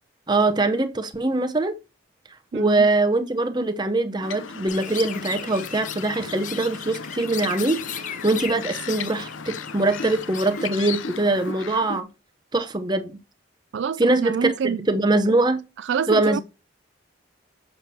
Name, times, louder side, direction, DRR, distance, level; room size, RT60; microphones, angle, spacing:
voice 1, 0.3-1.7 2.5-12.1 12.5-13.1 14.0-15.6 16.1-16.4, right 2 dB, 20° right, 0.8 m, -22 dB
voice 2, 2.5-2.9 13.7-14.9 15.8-16.4, right 6 dB, 70° right, 0.4 m, -27 dB
sound 1, 4.2-12.0, left 5 dB, 85° left, 0.7 m, -36 dB
Chirp tweet, 4.7-11.5, left 8 dB, 40° left, 0.6 m, -37 dB
7.2 x 6.7 x 2.8 m
head